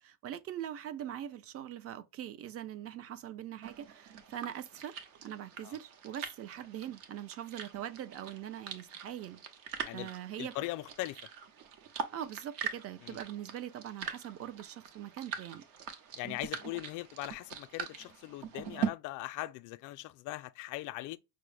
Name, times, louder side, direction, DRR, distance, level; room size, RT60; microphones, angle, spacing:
voice 1, 0.0-5.0 5.2-9.4 9.9-10.5 12.1-15.6, right 11 dB, 40° right, 0.5 m, -42 dB
sound 1, 3.6-18.9, right 7 dB, 65° right, 1.0 m, -43 dB
voice 2, 10.4-11.2 13.0-13.2 16.2-21.2, left 18 dB, 55° left, 0.4 m, -40 dB
5.8 x 2.1 x 3.2 m
cardioid pair, 130°, 38 cm